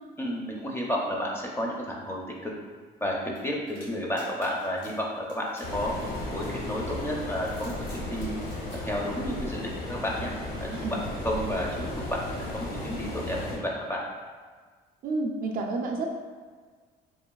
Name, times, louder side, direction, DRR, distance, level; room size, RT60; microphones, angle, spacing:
voice 1, 0.2-2.5 3.0-3.1 3.4-5.9 6.3-8.3 8.8-10.3 10.6-14.0, equal, 15° left, -2 dB, 0.4 m, -31 dB
sound 1, 3.4-6.8 7.3-8.8, left 1 dB, 90° left, 1.4 m, -53 dB
sound 2, 5.6-13.6, left 1 dB, 65° left, 0.7 m, -35 dB
voice 2, 15.0-16.1, right 3 dB, 55° right, 1 dB, 0.4 m, -30 dB
3.0 x 2.3 x 2.2 m, 1.5 s
cardioid pair, 110°, 17 cm